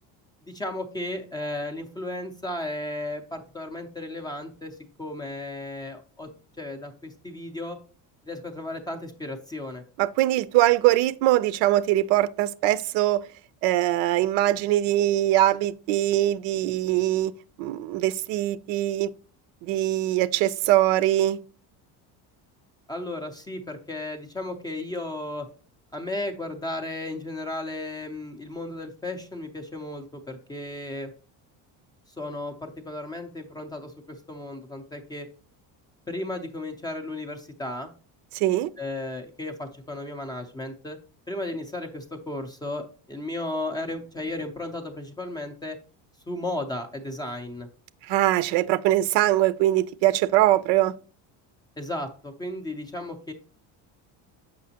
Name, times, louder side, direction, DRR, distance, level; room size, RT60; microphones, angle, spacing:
voice 1, 0.4-6.3 6.6-7.8 8.3-9.8 22.9-25.5 25.9-31.1 32.2-35.3 36.1-37.9 38.8-41.0 41.3-45.8 46.3-47.7 51.8-53.3, left 1 dB, 10° left, 0.4 m, -34 dB
voice 2, 10.0-13.2 13.6-17.3 17.6-19.1 19.6-21.4 38.3-38.7 48.1-50.9, right 14 dB, 90° right, 0.6 m, -22 dB
7.6 x 5.8 x 2.8 m
cardioid pair, 180°, 41 cm